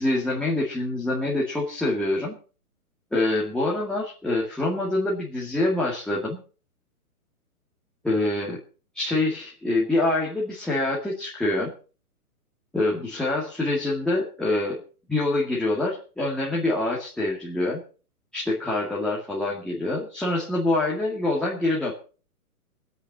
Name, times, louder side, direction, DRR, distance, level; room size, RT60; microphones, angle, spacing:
voice 1, 0.0-2.4 3.1-6.4 8.0-8.6 8.9-11.7 12.7-14.8 15.1-17.8 18.3-21.9, left 2 dB, ahead, -6 dB, 2.2 m, -25 dB
22.0 x 8.1 x 5.5 m, 0.38 s
hypercardioid pair, 160°, 45 cm